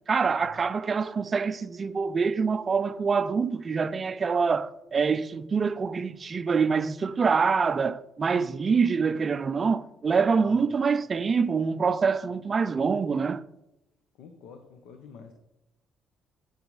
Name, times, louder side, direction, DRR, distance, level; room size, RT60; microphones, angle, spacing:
voice 1, 0.1-13.4, right 5 dB, 30° right, 0.3 m, -25 dB
voice 2, 14.2-15.3, left 6 dB, 85° left, 0.8 m, -48 dB
8.8 x 8.8 x 3.2 m
cardioid pair, 130°, 0 cm